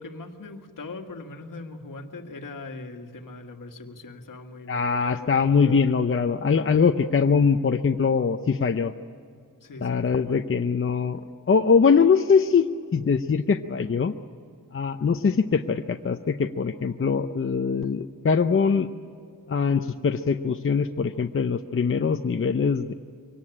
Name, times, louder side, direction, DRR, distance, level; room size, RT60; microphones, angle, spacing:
voice 1, 0.0-5.9 9.6-10.4, left 3 dB, 65° left, 4 dB, 1.9 m, -40 dB
voice 2, 4.7-8.9 9.8-14.1 14.7-18.9 19.5-22.9, left 5 dB, 40° left, 6 dB, 0.7 m, -22 dB
23.5 x 18.5 x 9.9 m, 2.3 s
wide cardioid pair, 120°, 34 cm